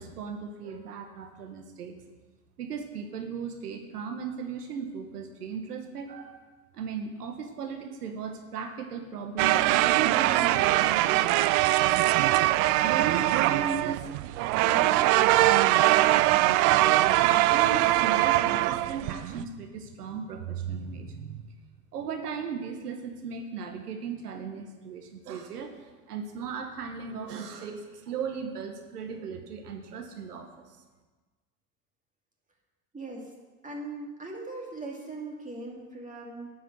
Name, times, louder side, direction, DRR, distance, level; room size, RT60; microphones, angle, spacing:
voice 1, 0.0-2.0 2.6-6.5 6.7-11.6 12.8-14.1 14.6-21.5 21.9-30.8, right 6 dB, 80° right, 5 dB, 1.2 m, -37 dB
sound 1, 9.4-19.4, right 16 dB, 40° right, 0.4 m, -22 dB
voice 2, 32.9-33.3 33.6-36.5, right 2 dB, 15° right, -1 dB, 2.6 m, -39 dB
10.5 x 5.5 x 7.5 m, 1.3 s
hypercardioid pair, 80°, 46 cm